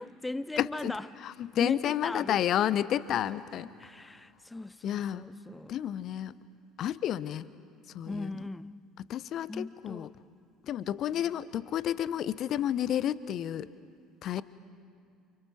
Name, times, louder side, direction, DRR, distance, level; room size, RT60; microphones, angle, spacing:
voice 1, 0.0-1.1 1.6-2.4 3.8-5.8 8.0-8.8 9.5-10.1, left 2 dB, 10° left, 0.6 m, -39 dB
voice 2, 0.6-0.9 1.2-3.7 4.8-5.3 5.7-6.3 6.8-7.4 7.9-8.3 9.1-10.1 10.7-13.7 14.2-14.4, left 11 dB, 45° left, 0.9 m, -30 dB
29.0 x 29.0 x 6.1 m
figure-of-eight pair, 60°, 0 cm